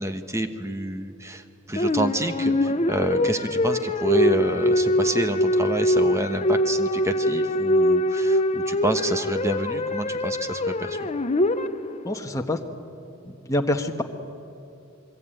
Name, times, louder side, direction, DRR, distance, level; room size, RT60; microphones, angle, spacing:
voice 1, 0.0-11.1, right 1 dB, 15° right, 8 dB, 1.2 m, -28 dB
sound 1, 1.8-12.2, left 1 dB, 30° left, 0.8 m, -23 dB
voice 2, 12.0-12.6 13.2-14.0, left 1 dB, 15° left, 3 dB, 1.3 m, -26 dB
27.0 x 22.0 x 9.1 m, 2.6 s
head